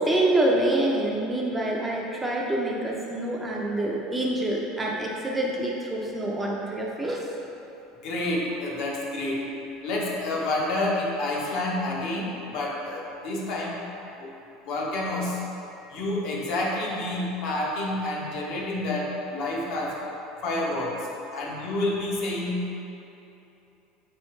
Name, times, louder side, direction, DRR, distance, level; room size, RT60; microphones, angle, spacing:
voice 1, 0.0-7.3, right 1 dB, 10° right, -2 dB, 0.3 m, -26 dB
voice 2, 8.0-9.5 9.8-13.8 14.2-14.3 14.7-15.4 15.9-20.0 20.4-22.8, left 2 dB, 55° left, -3 dB, 0.7 m, -29 dB
4.5 x 3.1 x 3.0 m, 2.9 s
cardioid pair, 155°, 0 cm